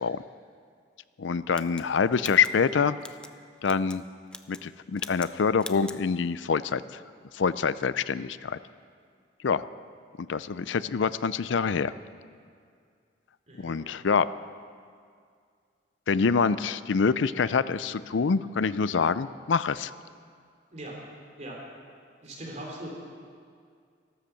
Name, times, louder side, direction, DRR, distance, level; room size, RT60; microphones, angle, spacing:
voice 1, 1.2-3.0 3.6-4.0 4.5-7.0 7.3-8.6 9.4-9.6 10.3-11.9 13.6-14.3 16.1-19.9, left 5 dB, 80° left, 15 dB, 0.5 m, -26 dB
sound 1, 1.5-3.3 3.6-4.0 4.3-4.7 5.0-5.3 5.6-6.0, left 2 dB, 5° left, 0.4 m, -42 dB
voice 2, 13.5-13.9 20.7-21.0 21.4-21.6 22.2-22.9, right 1 dB, 40° right, -2 dB, 3.3 m, -40 dB
13.5 x 13.0 x 7.0 m, 2.1 s
head